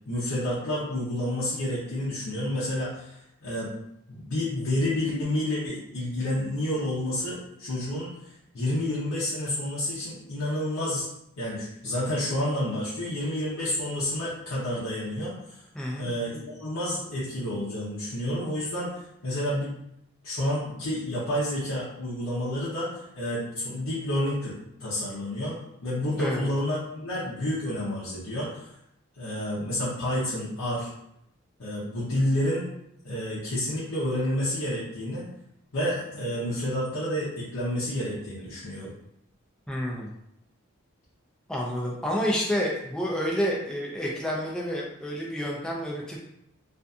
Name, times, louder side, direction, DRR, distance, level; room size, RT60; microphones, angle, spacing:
voice 1, 0.1-3.7 4.1-8.1 8.5-11.1 11.4-15.6 16.0-19.8 20.2-24.5 24.8-25.6 25.8-28.7 29.2-30.9 31.6-32.7 33.0-35.2 35.7-38.9, left 1 dB, 80° left, -10 dB, 0.7 m, -29 dB
voice 2, 15.7-16.1 26.2-26.5 39.7-40.1 41.5-46.2, equal, 5° left, -4 dB, 0.4 m, -29 dB
2.6 x 2.5 x 2.3 m, 0.78 s
head